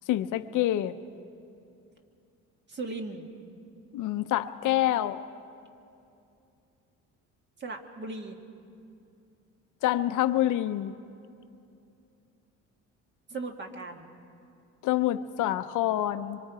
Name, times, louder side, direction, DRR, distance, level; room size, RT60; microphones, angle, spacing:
voice 1, 0.1-1.0 3.9-5.2 9.8-10.9 14.8-16.4, left 13 dB, 85° left, 10 dB, 0.8 m, -27 dB
voice 2, 2.7-3.2 7.6-8.4 13.3-14.1, right 3 dB, 35° right, 4 dB, 1.7 m, -37 dB
24.5 x 24.5 x 4.8 m, 2.6 s
cardioid pair, 145°, 30 cm